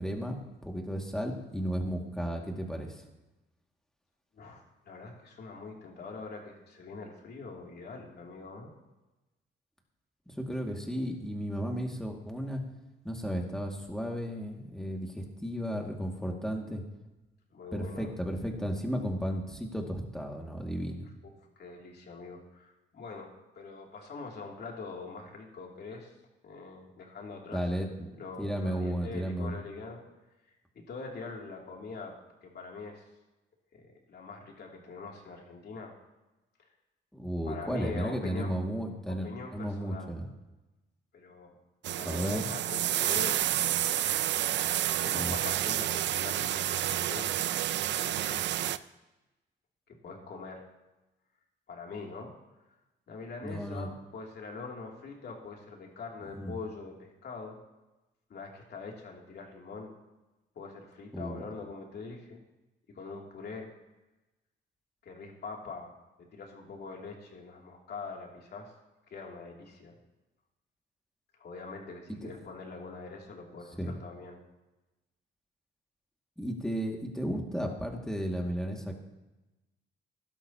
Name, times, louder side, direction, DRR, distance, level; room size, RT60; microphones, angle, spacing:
voice 1, 0.0-3.0 10.3-12.6 13.0-16.8 17.7-21.1 27.5-29.5 37.1-40.3 42.0-42.5 45.1-45.4 53.4-53.9 56.4-56.5 61.1-61.4 72.1-72.3 73.7-73.9 76.4-79.0, equal, 5° left, 1 dB, 2.2 m, -34 dB
voice 2, 4.3-8.7 17.5-18.1 21.6-26.1 26.4-27.7 28.2-30.0 30.7-32.1 32.4-33.1 33.7-35.9 37.5-38.5 39.1-40.1 41.1-41.6 41.9-43.4 45.0-48.8 49.9-50.6 51.7-52.3 53.1-57.6 58.3-60.0 60.5-62.4 62.9-63.7 65.0-65.9 66.2-68.7 69.1-70.0 71.4-74.4, left 4 dB, 55° left, 0 dB, 2.9 m, -43 dB
sound 1, 41.8-48.8, right 12 dB, 65° right, 0.5 m, -29 dB
16.5 x 12.0 x 2.9 m, 1.0 s
cardioid pair, 90°, 20 cm